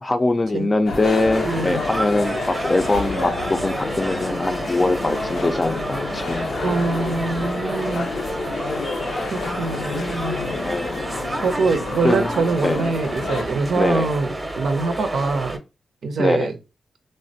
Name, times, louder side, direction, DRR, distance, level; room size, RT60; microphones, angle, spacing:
voice 1, 0.0-6.6 10.6-11.1 12.0-12.3 12.6-12.8 13.8-14.1 16.2-16.5, left 2 dB, 30° left, 0.5 m, -22 dB
sound 1, 0.9-13.4, left 4 dB, 75° left, 0.6 m, -30 dB
sound 2, 1.3-15.6, right 1 dB, 20° right, 0.7 m, -30 dB
voice 2, 1.4-1.8 6.6-8.1 9.3-10.6 11.4-14.3 14.6-15.6 16.0-16.6, right 4 dB, 75° right, 0.5 m, -24 dB
3.2 x 2.1 x 2.6 m
cardioid pair, 65°, 0 cm